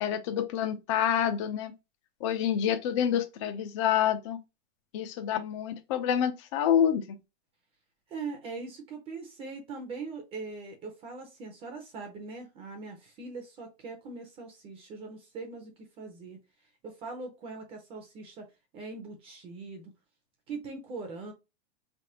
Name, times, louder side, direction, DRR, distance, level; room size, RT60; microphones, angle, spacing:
voice 1, 0.0-1.7 2.2-4.4 4.9-7.0, left 9 dB, 30° left, 0.4 m, -27 dB
voice 2, 8.1-16.4 16.8-18.5 18.7-19.9 20.5-21.3, right 4 dB, 15° right, 0.6 m, -41 dB
4.4 x 3.4 x 2.8 m
supercardioid pair, 165°, 33 cm